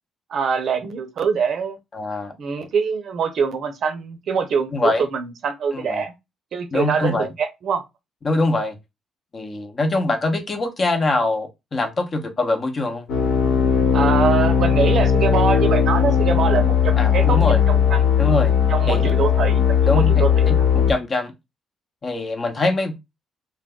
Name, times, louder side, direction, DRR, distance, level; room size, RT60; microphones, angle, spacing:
voice 1, 0.3-1.8 2.4-6.1 6.5-7.8 13.9-17.4 17.7-18.0 18.7-20.7, right 6 dB, 65° right, 0.6 m, -24 dB
voice 2, 1.9-2.3 4.7-5.0 5.7-6.0 6.7-7.3 8.2-8.8 9.3-13.1 17.0-17.6 18.2-18.5 18.9-19.0 19.9-21.3 22.0-23.0, left 2 dB, 40° left, 0.7 m, -23 dB
sound 1, 13.1-20.9, left 8 dB, 75° left, 0.7 m, -18 dB
2.3 x 2.2 x 3.6 m
cardioid pair, 90°, 0 cm